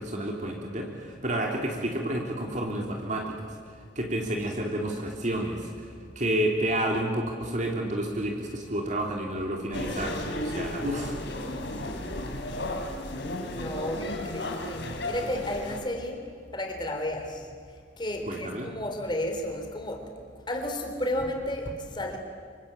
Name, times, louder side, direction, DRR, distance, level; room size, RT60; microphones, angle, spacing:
voice 1, 0.0-3.3 3.9-5.7 6.1-11.2 18.2-18.7, right 1 dB, 40° right, 1 dB, 3.1 m, -30 dB
sound 1, 9.7-15.8, left 1 dB, 60° left, 3.4 m, -34 dB
voice 2, 13.5-17.5 18.0-20.1 20.5-22.2, left 1 dB, 25° left, 4 dB, 3.6 m, -32 dB
26.0 x 24.5 x 8.9 m, 2.1 s
head